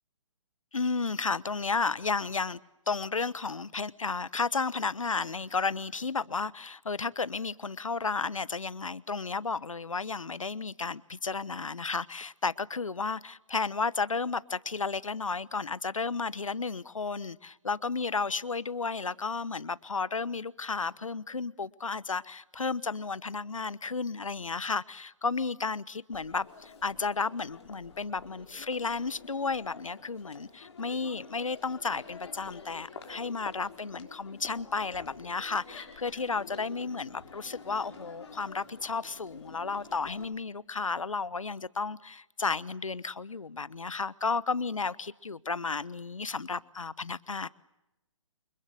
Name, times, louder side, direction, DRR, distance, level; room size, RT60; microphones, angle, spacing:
voice 1, 0.7-2.6 2.9-47.5, left 4 dB, 80° left, 1.2 m, -33 dB
Crowd, 26.1-40.2, left 5 dB, 55° left, 6.2 m, -49 dB
29.0 x 25.0 x 7.8 m
figure-of-eight pair, 135°, 17 cm